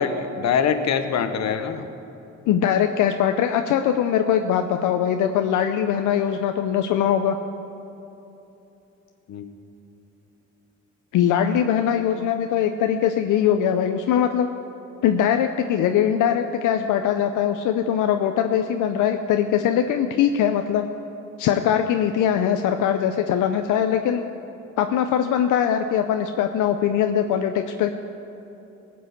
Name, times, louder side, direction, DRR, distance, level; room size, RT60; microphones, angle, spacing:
voice 1, 0.0-1.9 9.3-9.5, left 6 dB, 60° left, 9 dB, 1.1 m, -24 dB
voice 2, 2.5-7.4 11.1-14.5 15.0-20.9 21.4-24.2 24.8-27.9, left 9 dB, 85° left, 6 dB, 0.6 m, -21 dB
16.5 x 6.2 x 8.4 m, 3.0 s
cardioid pair, 90°, 30 cm